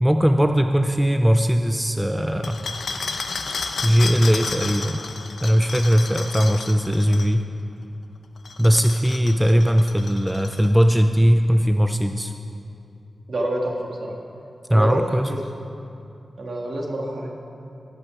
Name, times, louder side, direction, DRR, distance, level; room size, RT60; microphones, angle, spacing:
voice 1, 0.0-2.6 3.8-5.0 5.4-7.4 8.6-12.3 14.7-15.3, equal, 5° right, 6 dB, 0.4 m, -19 dB
sound 1, 2.4-7.3 8.4-10.8, left 4 dB, 75° left, 0.7 m, -32 dB
voice 2, 13.3-13.7 14.0-14.2 14.7-15.4 16.4-17.3, right 1 dB, 55° right, 0 dB, 1.6 m, -27 dB
17.0 x 9.0 x 4.8 m, 2.7 s
wide cardioid pair, 150°, 0 cm